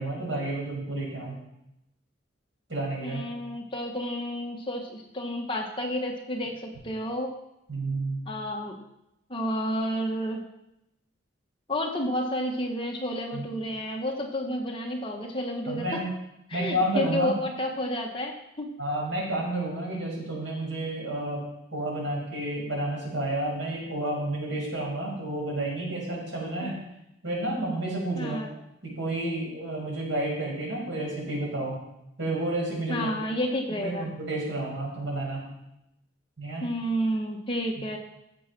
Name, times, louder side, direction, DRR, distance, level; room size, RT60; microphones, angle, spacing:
voice 1, 0.0-1.4 2.7-3.2 7.7-8.2 13.3-13.5 15.7-16.1 16.5-17.3 18.8-21.4 21.7-26.8 27.2-28.4 28.8-31.8 32.2-33.1 33.8-35.4 36.4-36.7, right 1 dB, 75° right, -3 dB, 6.1 m, -30 dB
voice 2, 3.0-7.4 8.2-8.8 9.3-10.5 11.7-16.0 16.5-18.7 26.6-26.7 28.1-28.5 32.9-34.1 36.6-38.0, equal, 25° left, 1 dB, 1.5 m, -30 dB
15.0 x 7.5 x 6.1 m, 0.85 s
head